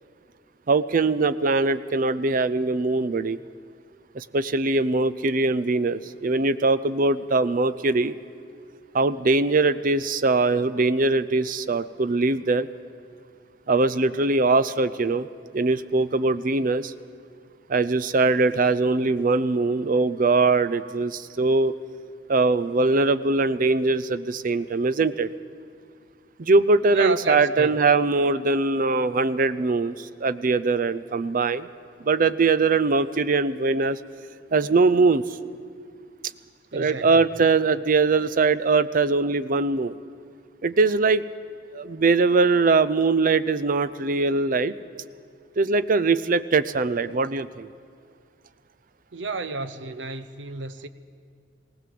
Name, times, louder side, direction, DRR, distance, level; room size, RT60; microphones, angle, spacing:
voice 1, 0.7-3.4 4.1-8.2 8.9-12.7 13.7-15.3 15.5-16.9 17.7-21.7 22.3-25.3 26.4-31.7 32.0-34.0 34.5-35.4 36.7-40.0 40.6-41.2 41.7-44.7 45.6-47.7, right 3 dB, 50° right, 14 dB, 0.6 m, -22 dB
voice 2, 26.9-27.7 36.7-37.2 49.1-50.9, right 3 dB, 85° right, 11 dB, 0.9 m, -31 dB
19.0 x 18.0 x 7.7 m, 2.2 s
head